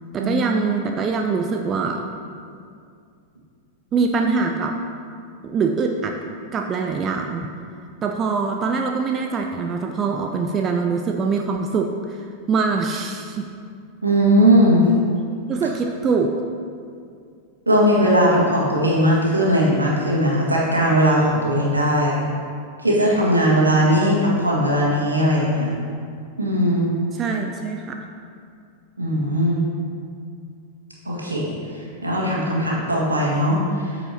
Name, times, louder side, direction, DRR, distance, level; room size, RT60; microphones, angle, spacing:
voice 1, 0.1-2.1 3.9-4.8 5.4-6.2 6.5-7.5 8.0-13.5 15.5-16.4 27.1-28.0, right 4 dB, 25° right, 3 dB, 0.5 m, -23 dB
voice 2, 14.0-14.9 17.7-22.2 22.8-25.7 26.4-26.9 29.0-29.6 31.1-31.5 32.0-33.9, equal, 80° right, -5 dB, 1.9 m, -18 dB
13.5 x 4.9 x 2.9 m, 2.3 s
figure-of-eight pair, 90°, 0 cm